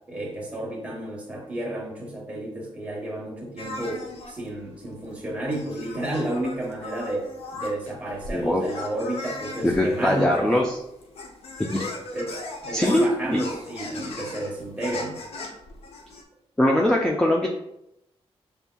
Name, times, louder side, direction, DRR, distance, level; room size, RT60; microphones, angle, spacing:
voice 1, 0.1-10.5 12.1-12.4 12.6-15.2, right 1 dB, 10° right, -3 dB, 1.1 m, -31 dB
sound 1, 3.6-16.2, left 2 dB, 70° left, 0.7 m, -39 dB
voice 2, 9.6-10.8 11.7-11.9 12.7-13.4 16.6-17.5, left 1 dB, 5° left, 0 dB, 0.4 m, -21 dB
7.0 x 3.5 x 2.2 m, 0.82 s
wide cardioid pair, 180°, 11 cm